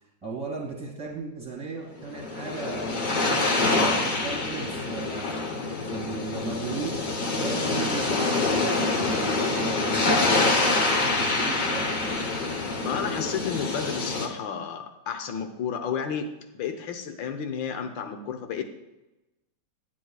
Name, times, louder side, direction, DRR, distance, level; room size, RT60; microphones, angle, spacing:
voice 1, 0.2-5.4 5.8-11.9, right 3 dB, 5° right, -3 dB, 1.9 m, -36 dB
sound 1, 2.0-14.3, left 3 dB, 35° left, 0.8 m, -26 dB
voice 2, 12.8-18.6, left 7 dB, 85° left, 6 dB, 1.6 m, -32 dB
10.0 x 8.8 x 2.3 m, 1.0 s
omnidirectional pair, 2.0 m